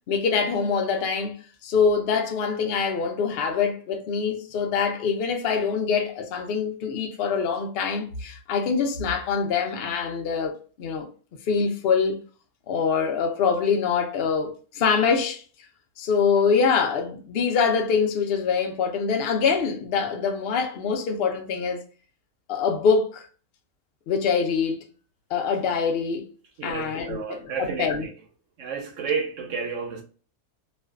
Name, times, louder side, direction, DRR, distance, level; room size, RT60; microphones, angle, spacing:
voice 1, 0.1-1.4 1.6-11.1 11.5-12.2 12.7-15.4 16.0-21.8 22.5-23.3 24.1-24.9 25.3-26.3 26.6-28.1, left 5 dB, 80° left, 0.5 m, -24 dB
voice 2, 26.6-28.1 28.6-30.0, right 5 dB, 70° right, 0.8 m, -31 dB
2.5 x 2.2 x 2.3 m
omnidirectional pair, 1.6 m